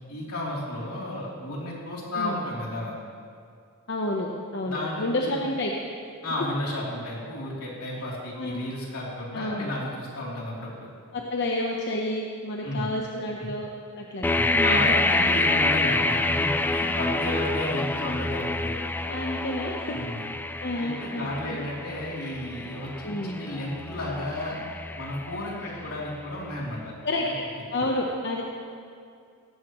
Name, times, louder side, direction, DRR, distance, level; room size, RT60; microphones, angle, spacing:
voice 1, 0.1-2.9 4.6-5.4 6.2-10.9 12.6-12.9 14.3-18.7 19.9-20.2 20.8-24.6 25.0-26.9, left 1 dB, 80° left, -4 dB, 3.3 m, -33 dB
voice 2, 3.9-5.7 8.4-8.7 9.3-9.7 11.1-13.7 14.0-14.9 19.1-19.9 20.6-21.6 23.0-23.4 27.0-27.4 27.7-28.4, left 1 dB, 50° left, 0 dB, 0.9 m, -30 dB
sound 1, 14.2-26.0, left 2 dB, 10° left, 0.3 m, -27 dB
17.0 x 14.5 x 3.1 m, 2.3 s
head